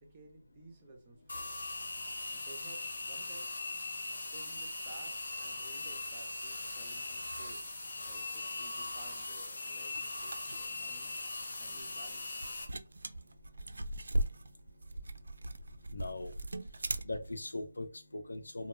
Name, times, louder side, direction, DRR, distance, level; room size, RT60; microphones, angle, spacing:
voice 1, 0.0-1.6 2.3-3.6 4.3-7.7 8.1-11.2 11.6-12.4, right 2 dB, 15° right, 0.5 m, -55 dB
sound 1, 1.3-12.7, left 2 dB, 50° left, 0.7 m, -40 dB
sound 2, 9.7-17.4, right 1 dB, 65° right, 0.3 m, -39 dB
voice 2, 15.9-16.3 17.0-18.7, left 2 dB, 80° left, 0.6 m, -40 dB
2.2 x 2.1 x 3.0 m
figure-of-eight pair, 170°, 0 cm